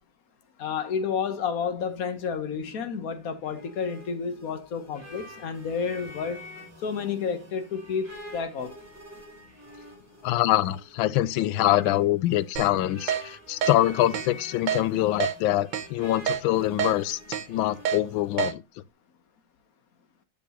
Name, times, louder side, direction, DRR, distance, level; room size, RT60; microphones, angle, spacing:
voice 1, 0.6-6.4 6.8-8.8, left 6 dB, 50° left, 1.4 m, -30 dB
sound 1, 3.1-18.4, left 1 dB, 5° right, 3.3 m, -47 dB
voice 2, 10.2-17.2 17.5-18.6, left 14 dB, 85° left, 1.4 m, -24 dB
Keyboard (musical), 12.6-12.7 13.1-13.2 13.6-13.8 14.1-14.3 14.7-14.8 15.2-15.3 15.7-15.9 16.3-16.4 16.8-16.9 17.3-17.5 17.9-18.0 18.4-18.5, right 8 dB, 80° right, 1.7 m, -27 dB
8.1 x 7.0 x 2.9 m
omnidirectional pair, 2.1 m